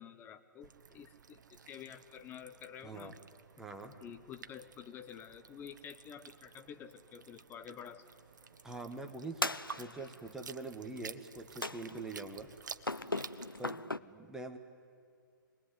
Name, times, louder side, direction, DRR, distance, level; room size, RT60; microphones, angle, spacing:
voice 1, 0.0-3.1 4.0-8.0 9.4-9.6 10.0-10.1, left 8 dB, 20° left, 9 dB, 0.8 m, -50 dB
sound 1, 0.6-13.7, right 6 dB, 60° right, 0.9 m, -53 dB
voice 2, 2.8-3.1 3.6-4.0 8.6-9.4 9.8-12.5 13.6-14.6, right 3 dB, 5° right, 5 dB, 1.5 m, -44 dB
sound 2, 9.4-10.2 11.6-12.2 12.8-14.0, left 2 dB, 85° left, 0.6 m, -38 dB
26.0 x 20.5 x 9.6 m, 2.2 s
figure-of-eight pair, 120°, 11 cm